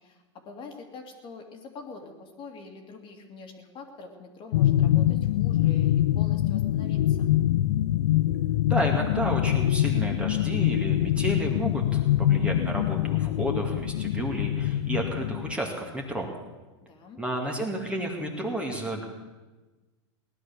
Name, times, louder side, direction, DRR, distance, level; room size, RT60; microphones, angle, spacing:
voice 1, 0.0-7.3 16.8-17.2, left 3 dB, 35° left, 3 dB, 2.5 m, -45 dB
sound 1, 4.5-15.5, left 13 dB, 75° left, 0.5 m, -24 dB
voice 2, 8.7-16.3 17.2-19.0, right 1 dB, 5° right, 0 dB, 2.2 m, -31 dB
18.0 x 11.0 x 7.0 m, 1.2 s
hypercardioid pair, 125°, 15 cm